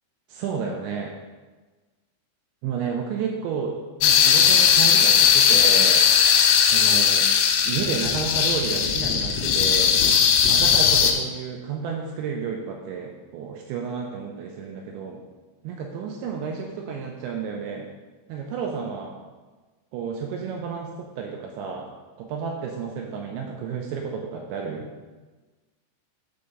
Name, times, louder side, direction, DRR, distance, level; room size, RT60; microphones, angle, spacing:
voice 1, 0.3-1.1 2.6-3.8 4.0-6.0 6.7-7.3 7.6-10.0 10.5-15.2 15.6-17.9 18.3-19.2 19.9-21.9 22.2-24.9, right 6 dB, 85° right, 0 dB, 2.7 m, -31 dB
sound 1, 4.0-11.1, left 7 dB, 85° left, 3.4 m, -18 dB
7.0 x 4.9 x 6.5 m, 1.3 s
omnidirectional pair, 5.9 m